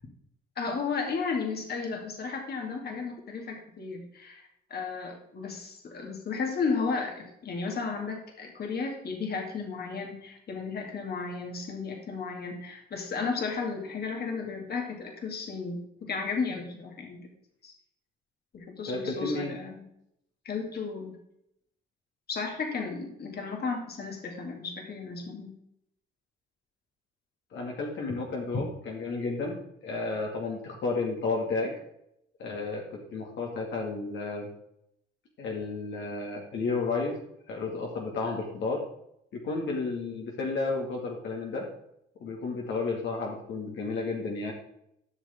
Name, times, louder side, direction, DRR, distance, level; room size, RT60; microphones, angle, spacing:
voice 1, 0.6-4.4 4.7-17.2 17.6-17.7 18.5-19.8 20.4-21.1 22.3-25.5, left 4 dB, 55° left, 2 dB, 2.3 m, -34 dB
voice 2, 18.9-19.5 27.5-29.6 29.8-31.7 32.4-34.5 35.4-37.2 37.5-38.8 39.3-41.7 42.2-44.5, left 3 dB, 70° left, -1 dB, 2.1 m, -32 dB
12.0 x 6.5 x 3.6 m, 0.77 s
cardioid pair, 90°, 20 cm